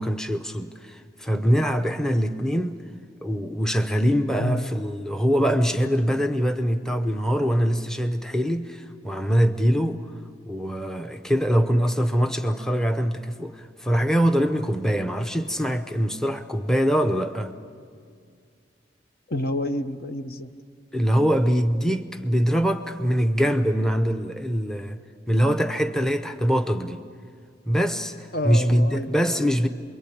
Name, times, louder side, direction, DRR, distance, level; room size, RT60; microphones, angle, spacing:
voice 1, 0.0-2.8 3.2-10.0 10.5-17.5 20.9-25.0 25.3-27.0 27.7-29.7, equal, 5° left, 8 dB, 0.8 m, -23 dB
voice 2, 4.4-4.7 19.3-20.5 28.3-29.5, left 1 dB, 55° left, 8 dB, 1.0 m, -29 dB
28.5 x 22.5 x 8.6 m, 2.2 s
head